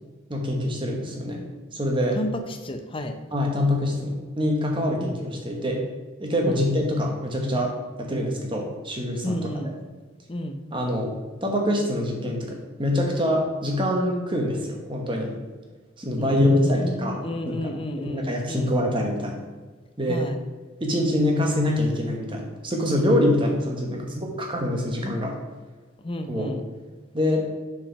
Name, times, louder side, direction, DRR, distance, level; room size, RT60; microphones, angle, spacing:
voice 1, 0.3-1.4 1.7-2.2 3.3-5.9 6.2-9.4 10.7-11.1 11.4-15.3 16.0-17.2 17.4-19.4 20.0-20.2 20.8-25.3 26.3-26.5 27.1-27.5, left 1 dB, 25° right, 1 dB, 1.1 m, -25 dB
voice 2, 2.1-3.2 5.0-5.2 6.4-6.7 9.2-9.7 10.3-10.6 16.2-18.7 20.1-20.4 26.0-26.6, left 1 dB, 25° left, 7 dB, 0.5 m, -31 dB
5.9 x 4.8 x 5.7 m, 1.3 s
head